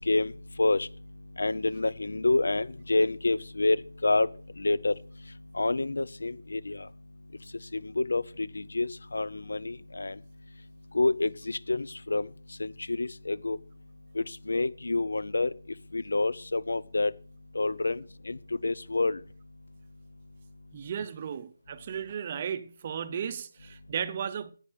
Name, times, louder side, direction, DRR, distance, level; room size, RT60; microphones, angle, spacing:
voice 1, 1.4-4.3 4.6-4.9 5.6-6.8 8.0-10.1 10.9-12.3 12.6-13.6 14.2-15.5 15.9-17.1 17.5-18.4 18.6-19.2, left 2 dB, 90° left, 0.8 m, -28 dB
voice 2, 20.7-24.5, right 8 dB, 20° right, 0.6 m, -35 dB
10.0 x 8.7 x 6.4 m
hypercardioid pair, 175°, 0 cm